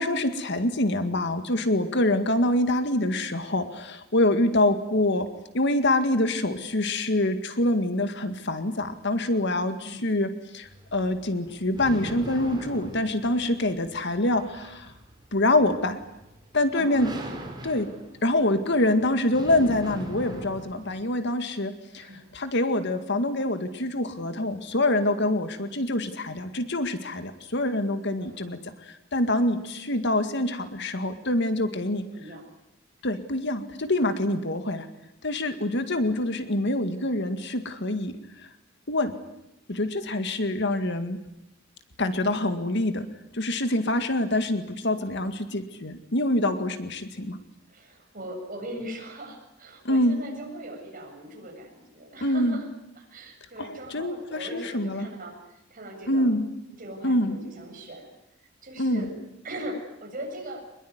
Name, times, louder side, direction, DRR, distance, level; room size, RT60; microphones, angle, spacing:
voice 1, 0.0-5.3 5.5-14.9 15.3-16.0 16.5-17.1 17.6-17.9 18.2-22.1 22.3-28.6 28.9-32.0 33.0-34.9 35.2-38.2 38.9-39.1 39.7-41.2 42.0-43.1 43.3-47.4 49.8-50.2 52.2-52.6 53.6-55.1 56.1-56.4 57.0-57.4 58.8-59.1, left 1 dB, 60° left, 9 dB, 2.1 m, -25 dB
voice 2, 9.8-10.1 13.3-13.6 16.7-17.1 20.9-21.3 21.9-22.3 28.2-28.6 31.9-32.4 47.7-52.7 53.0-56.4 56.8-58.1 58.6-59.1 59.4-60.6, right 1 dB, 45° right, 2 dB, 7.4 m, -40 dB
sound 1, 10.6-21.1, right 1 dB, 20° right, 4.7 m, -42 dB
24.5 x 21.5 x 9.6 m, 0.86 s
head